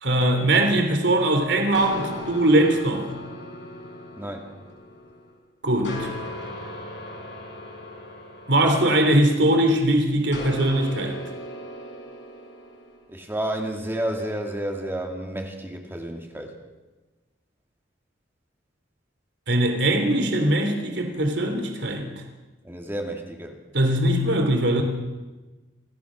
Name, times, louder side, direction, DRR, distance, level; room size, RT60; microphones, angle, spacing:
voice 1, 0.0-3.1 5.6-6.1 8.5-11.2 19.5-22.1 23.7-24.8, right 1 dB, 70° right, 5 dB, 3.4 m, -21 dB
sound 1, 1.7-5.3 5.8-9.6 10.3-13.0, left 1 dB, 75° left, 5.4 m, -37 dB
voice 2, 4.2-4.5 13.1-16.5 22.6-23.6, right 1 dB, 15° right, 2 dB, 2.4 m, -31 dB
27.0 x 15.5 x 6.4 m, 1.2 s
head